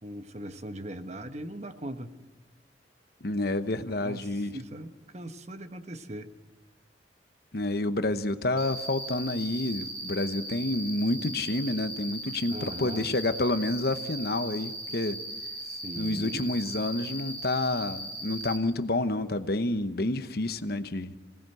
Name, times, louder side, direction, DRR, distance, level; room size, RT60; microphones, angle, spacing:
voice 1, 0.0-2.1 4.0-6.3 12.5-13.1 15.6-16.5, right 1 dB, 35° right, 8 dB, 1.2 m, -40 dB
voice 2, 3.2-4.6 7.5-15.2 16.0-21.1, left 2 dB, 55° left, 10 dB, 1.0 m, -29 dB
Cricket, 8.6-18.6, right 1 dB, 55° right, 5.0 m, -38 dB
25.0 x 18.5 x 7.8 m, 1.2 s
head